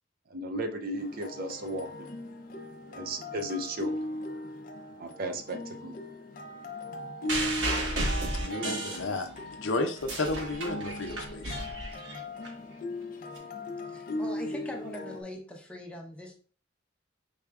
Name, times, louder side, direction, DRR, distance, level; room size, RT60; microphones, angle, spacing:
voice 1, 0.3-2.1 2.9-4.1 5.0-6.0, right 1 dB, 50° right, 6 dB, 0.6 m, -35 dB
sound 1, 1.0-15.2, left 1 dB, 50° left, 0.6 m, -38 dB
sound 2, 7.3-9.5 9.9-12.5 13.4-13.5, right 1 dB, 70° right, 1.2 m, -33 dB
voice 2, 8.3-9.3 9.6-11.7, left 2 dB, 90° left, 6 dB, 0.7 m, -32 dB
voice 3, 13.9-16.3, left 1 dB, 5° left, 1 dB, 0.8 m, -41 dB
4.9 x 3.5 x 2.3 m, 0.40 s
head